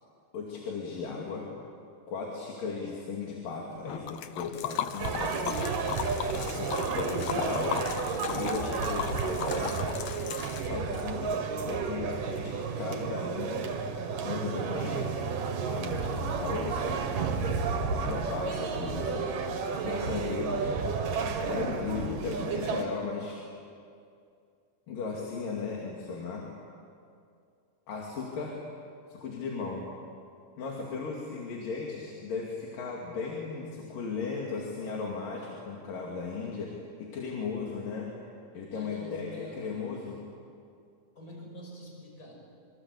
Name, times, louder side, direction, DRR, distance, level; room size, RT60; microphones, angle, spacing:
voice 1, 0.3-1.5 2.1-5.6 6.3-7.8 8.3-9.9 10.6-13.7 14.2-15.2 15.7-17.0 17.3-17.5 18.0-19.3 19.8-20.8 21.5-23.4 24.9-26.5 27.9-28.6 29.1-29.9 30.6-36.7 37.0-38.1 38.5-39.3 39.6-40.2, left 4 dB, 85° left, -2 dB, 4.4 m, -36 dB
Liquid, 3.9-11.0, left 10 dB, 70° left, 2.0 m, -36 dB
sound 1, 5.0-22.9, right 5 dB, 85° right, 3.6 m, -32 dB
voice 2, 38.7-40.1 41.1-42.3, equal, 25° left, 0 dB, 6.3 m, -45 dB
26.5 x 26.0 x 8.5 m, 2.4 s
omnidirectional pair, 3.7 m